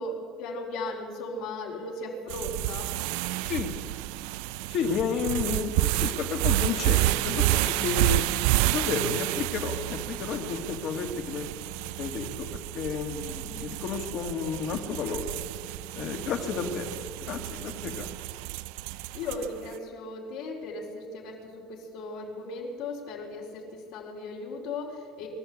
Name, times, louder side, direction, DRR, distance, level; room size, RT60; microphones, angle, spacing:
voice 1, 0.0-2.9 16.1-16.2 19.1-25.3, left 2 dB, 65° left, -2 dB, 4.3 m, -37 dB
sound 1, 2.3-19.7, right 16 dB, 75° right, 0.4 m, -30 dB
voice 2, 4.7-8.2 8.7-11.6 12.0-15.2 15.9-17.0 17.3-18.1, left 6 dB, 40° left, 4 dB, 2.1 m, -32 dB
23.5 x 13.5 x 8.5 m, 2.1 s
cardioid pair, 175°, 0 cm